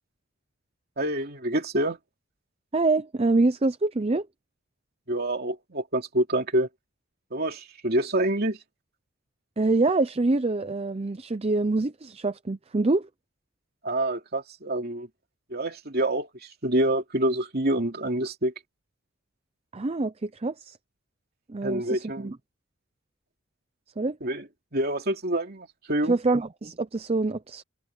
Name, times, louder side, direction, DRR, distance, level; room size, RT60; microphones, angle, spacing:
voice 1, 1.0-2.0 5.1-6.7 7.3-8.6 13.8-15.1 15.5-18.5 21.6-22.3 24.2-24.5 24.7-26.2, right 1 dB, 45° right, 2.8 m, -27 dB
voice 2, 2.7-4.3 9.6-13.1 19.7-20.8 21.5-22.4 24.0-24.2 26.1-27.6, right 3 dB, 30° right, 0.5 m, -25 dB
head